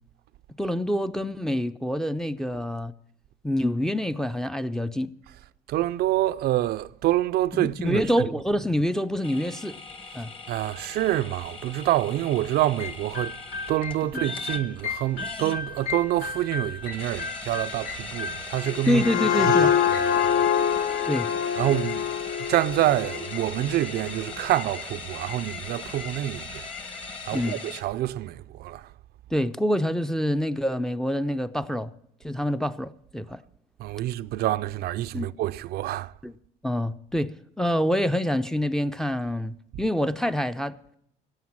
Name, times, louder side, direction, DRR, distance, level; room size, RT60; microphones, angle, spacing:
voice 1, 0.6-2.9 3.4-5.1 7.6-9.8 10.1-10.3 14.1-14.2 18.9-19.7 21.1-21.3 27.3-27.6 29.3-31.9 32.2-33.4 35.1-35.3 36.2-36.3 36.6-40.8, equal, 5° left, 0.5 m, -26 dB
voice 2, 5.7-8.3 10.5-13.4 13.7-19.0 19.4-21.1 21.5-22.1 22.4-26.7 27.1-28.9 33.8-36.1 39.7-39.8, right 14 dB, 70° right, 0.5 m, -27 dB
sound 1, 9.2-27.8, left 4 dB, 30° left, 1.5 m, -39 dB
sound 2, 12.8-20.1, left 4 dB, 85° left, 1.7 m, -36 dB
sound 3, 18.6-24.1, left 8 dB, 55° left, 0.8 m, -25 dB
14.5 x 8.9 x 7.3 m
cardioid pair, 110°, 17 cm